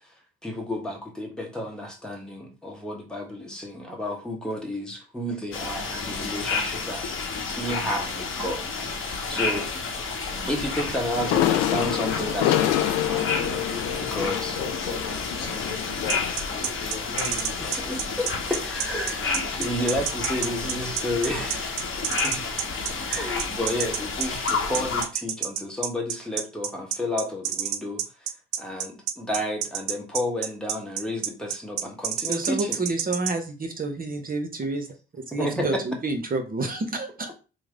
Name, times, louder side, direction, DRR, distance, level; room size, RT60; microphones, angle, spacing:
voice 1, 0.4-7.1 7.4-9.7 10.4-13.4 14.0-14.6 17.6-21.9 22.2-22.4 23.1-28.0 28.6-32.8 35.4-35.8, left 1 dB, ahead, 1.2 m, -31 dB
sound 1, 5.5-25.1, left 4 dB, 45° left, 0.9 m, -31 dB
sound 2, 11.2-16.3, left 13 dB, 60° left, 0.4 m, -27 dB
voice 2, 13.2-18.2, left 4 dB, 80° left, 1.0 m, -37 dB
sound 3, 16.1-33.3, right 10 dB, 65° right, 0.5 m, -29 dB
voice 3, 32.3-34.9 35.1-37.3, right 2 dB, 30° right, 0.8 m, -29 dB
3.2 x 2.1 x 3.6 m
hypercardioid pair, 50°, 30 cm